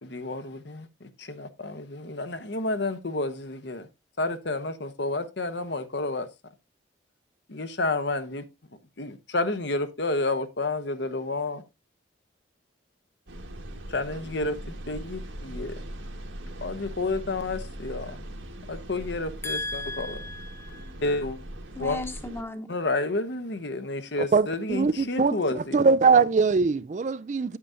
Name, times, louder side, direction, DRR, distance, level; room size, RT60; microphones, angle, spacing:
voice 1, 0.0-3.9 4.2-6.3 7.5-8.4 9.0-11.6 13.9-15.8 16.6-18.2 18.7-20.2 21.0-21.4 21.8-22.0 22.7-25.8, left 2 dB, 60° left, 1.0 m, -30 dB
sound 1, 13.3-22.4, right 1 dB, 75° right, 1.8 m, -40 dB
voice 2, 19.4-20.9 21.8-22.7, left 2 dB, 10° left, 1.0 m, -35 dB
voice 3, 24.3-27.6, right 4 dB, 35° right, 0.3 m, -22 dB
9.0 x 8.5 x 2.7 m
head